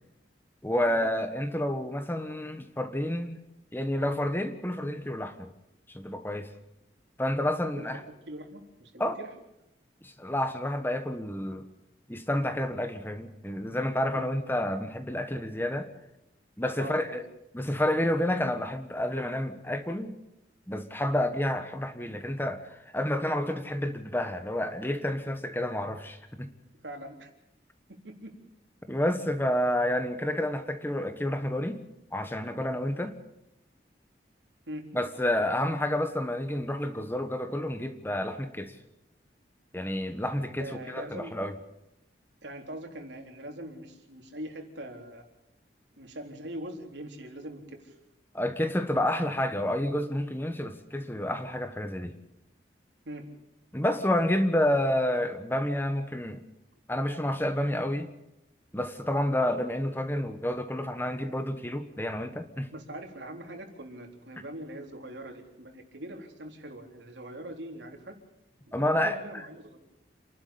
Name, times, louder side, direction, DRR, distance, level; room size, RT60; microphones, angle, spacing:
voice 1, 0.6-3.4 3.7-5.5 5.9-6.5 7.2-8.0 9.0-9.2 10.0-11.6 12.1-15.9 16.6-17.2 17.5-20.1 20.7-26.5 28.8-31.8 32.1-33.1 34.9-38.8 39.7-41.5 48.3-52.2 53.7-56.4 56.9-58.1 58.7-62.7 68.7-69.2, left 1 dB, 10° left, 1.4 m, -29 dB
voice 2, 7.8-9.3 14.1-14.3 16.7-17.2 26.8-27.3 27.9-28.3 34.7-34.9 40.6-41.3 42.4-45.2 46.0-48.0 53.1-53.3 62.7-68.2 68.7-69.8, right 1 dB, 85° right, 3.9 m, -42 dB
28.5 x 12.0 x 8.6 m
head